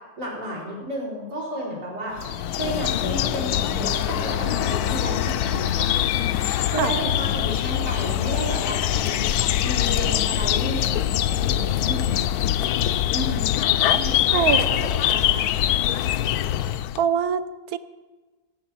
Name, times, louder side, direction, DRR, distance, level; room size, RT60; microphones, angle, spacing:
voice 1, 0.2-5.9 6.7-12.2 13.1-13.5 13.8-15.9, equal, 90° right, -5 dB, 5.0 m, -32 dB
sound 1, 2.2-17.0, left 11 dB, 75° left, 1.0 m, -23 dB
voice 2, 14.3-14.6 17.0-17.8, right 8 dB, 70° right, 13 dB, 1.1 m, -23 dB
17.0 x 6.6 x 8.9 m, 1.3 s
omnidirectional pair, 1.7 m